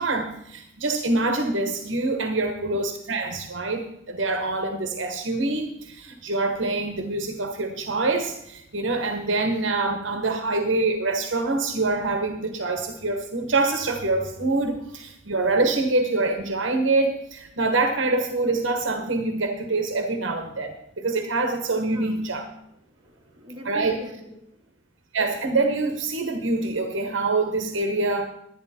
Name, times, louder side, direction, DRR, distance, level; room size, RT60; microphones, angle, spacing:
voice 1, 0.0-22.5 23.6-24.0 25.1-28.3, right 3 dB, 65° right, 6 dB, 1.1 m, -25 dB
voice 2, 1.7-2.2 21.7-22.2 22.9-24.7, left 1 dB, 25° right, -1 dB, 1.9 m, -43 dB
10.5 x 10.5 x 4.3 m, 0.77 s
head